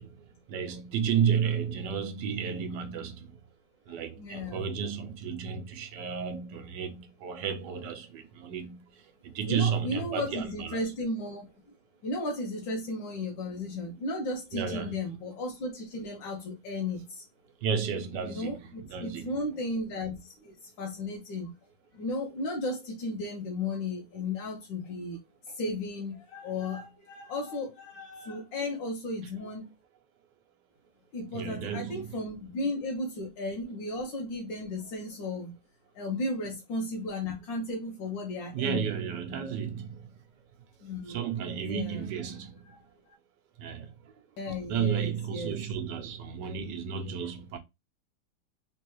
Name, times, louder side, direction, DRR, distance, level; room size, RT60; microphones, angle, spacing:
voice 1, 0.0-3.5 3.9-10.8 14.5-15.2 17.6-19.7 29.2-29.3 31.3-32.2 36.4-36.5 38.5-40.4 41.1-42.9 43.6-44.1 44.7-47.6, right 7 dB, 75° right, 1.4 m, -33 dB
voice 2, 4.2-4.6 9.5-11.5 12.0-17.2 18.2-21.5 21.9-25.2 25.5-29.7 31.1-35.6 35.9-38.9 40.8-41.2 41.7-42.0 44.4-45.6, left 2 dB, 90° left, 1.7 m, -34 dB
3.7 x 3.4 x 3.1 m
omnidirectional pair, 1.9 m